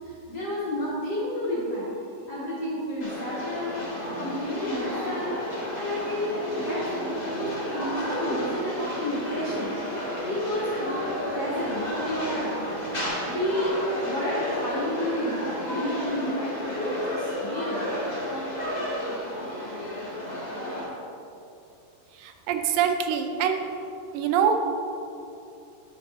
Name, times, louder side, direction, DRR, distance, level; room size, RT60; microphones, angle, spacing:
voice 1, 0.0-1.9 2.3-3.8 4.1-5.3 5.7-9.7 10.2-12.6 13.2-13.7 14.0-17.9, equal, 70° left, -9 dB, 0.9 m, -31 dB
sound 1, 3.0-20.8, left 1 dB, 40° left, 0.5 m, -32 dB
voice 2, 22.2-23.7 24.1-24.5, right 8 dB, 80° right, 6 dB, 2.2 m, -24 dB
10.0 x 4.3 x 4.1 m, 2.7 s
omnidirectional pair, 4.1 m